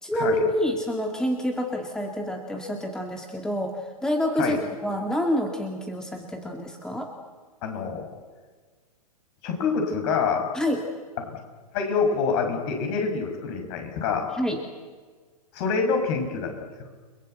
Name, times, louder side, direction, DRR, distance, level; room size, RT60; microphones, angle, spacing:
voice 1, 0.0-7.1 10.5-10.9 14.3-14.6, equal, 5° left, 2 dB, 2.2 m, -27 dB
voice 2, 7.6-8.1 9.4-10.5 11.3-11.4 11.7-14.3 15.5-16.5, left 5 dB, 40° left, 4 dB, 6.5 m, -26 dB
30.0 x 21.0 x 8.1 m, 1.5 s
figure-of-eight pair, 115°, 20 cm